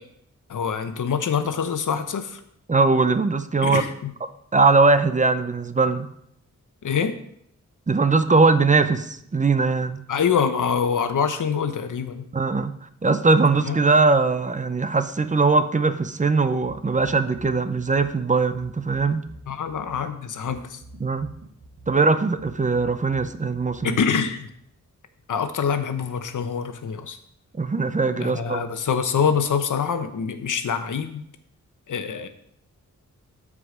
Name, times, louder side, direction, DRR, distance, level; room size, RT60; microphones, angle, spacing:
voice 1, 0.5-2.4 3.6-4.1 6.8-7.1 10.1-12.2 13.6-13.8 19.5-20.8 23.8-24.5 25.3-27.2 28.2-31.2 31.9-32.3, left 6 dB, 90° left, 9 dB, 0.9 m, -25 dB
voice 2, 2.7-3.8 4.5-6.1 7.9-10.0 12.3-12.7 13.0-19.2 21.0-21.3 21.9-24.0 27.6-28.6, right 3 dB, 25° right, 11 dB, 0.6 m, -20 dB
sound 1, 16.6-24.2, right 2 dB, 85° right, 2.1 m, -46 dB
13.0 x 4.9 x 5.0 m, 0.72 s
wide cardioid pair, 135°, 30 cm